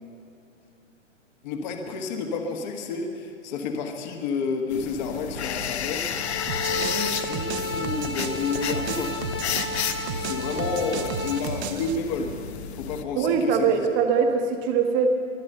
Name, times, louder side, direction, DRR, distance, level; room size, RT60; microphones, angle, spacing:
voice 1, 1.4-9.2 9.8-12.4 12.7-13.8, left 4 dB, 35° left, 4 dB, 1.4 m, -31 dB
sound 1, 4.7-13.0, left 8 dB, 60° left, 1.1 m, -32 dB
sound 2, 6.1-11.4, left 2 dB, 20° left, 0.4 m, -33 dB
sound 3, 6.5-12.0, right 6 dB, 60° right, 1.2 m, -35 dB
voice 2, 13.1-15.1, right 6 dB, 25° right, 5 dB, 1.2 m, -22 dB
23.5 x 8.4 x 6.7 m, 2.7 s
hypercardioid pair, 150°, 37 cm